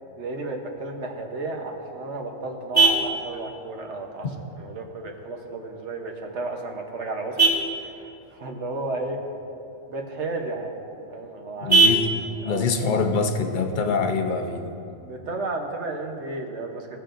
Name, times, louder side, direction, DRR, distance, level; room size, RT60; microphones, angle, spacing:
voice 1, 0.2-4.3 4.6-7.4 7.8-9.2 9.9-10.8 11.1-11.8 12.4-12.7 15.0-16.9, right 2 dB, 60° right, 2 dB, 1.2 m, -33 dB
Vehicle horn car horn honking, 1.5-14.5, right 3 dB, 15° right, 1.7 m, -28 dB
voice 2, 11.6-12.1 12.4-14.7, left 4 dB, 45° left, 5 dB, 0.7 m, -24 dB
17.0 x 6.8 x 2.5 m, 2.8 s
omnidirectional pair, 1.4 m